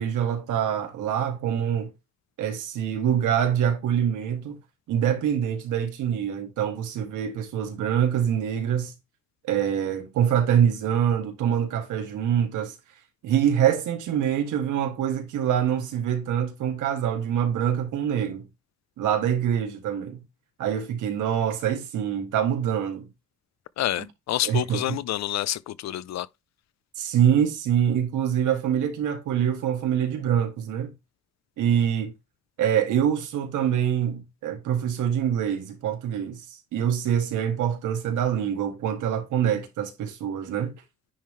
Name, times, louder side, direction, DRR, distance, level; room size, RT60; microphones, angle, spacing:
voice 1, 0.0-1.9 2.4-4.6 4.9-8.9 9.5-12.7 13.2-18.5 19.0-20.2 20.6-23.1 24.4-25.0 27.0-30.9 31.6-32.1 32.6-40.7, right 9 dB, 85° right, 1.9 m, -25 dB
voice 2, 23.8-26.3, left 13 dB, 60° left, 0.6 m, -28 dB
10.0 x 3.6 x 3.2 m
cardioid pair, 90°, 30 cm